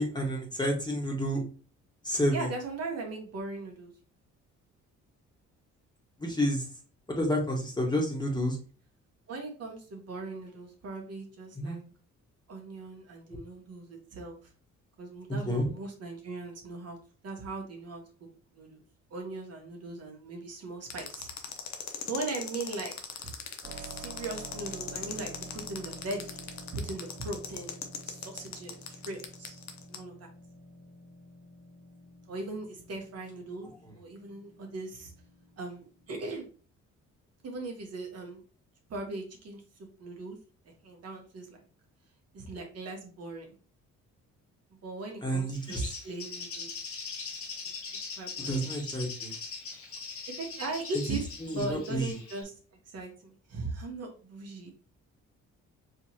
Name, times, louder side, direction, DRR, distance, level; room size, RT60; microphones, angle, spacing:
voice 1, 0.0-1.4 2.0-2.5 6.2-6.6 7.1-8.6 11.6-11.8 15.5-15.7 45.2-45.9 48.5-49.3 51.4-52.1, equal, 15° left, -1 dB, 1.5 m, -29 dB
voice 2, 2.3-3.9 9.3-11.8 12.5-14.4 15.0-17.0 17.2-18.0 18.5-18.8 19.1-21.3 22.1-23.3 23.8-27.8 28.0-29.6 29.9-30.3 32.3-35.1 35.6-36.5 37.4-38.4 38.9-40.4 40.6-41.6 42.3-43.5 44.8-46.7 48.2-48.6 50.3-52.5 52.9-54.7, right 3 dB, 55° right, 2 dB, 1.2 m, -39 dB
sound 1, 20.9-30.0, left 8 dB, 65° left, 0.8 m, -39 dB
Keyboard (musical), 23.6-36.1, right 2 dB, 30° right, 1.8 m, -49 dB
Bird, 45.5-52.4, left 5 dB, 45° left, 1.2 m, -41 dB
4.8 x 2.9 x 2.9 m, 0.37 s
cardioid pair, 90°, 30 cm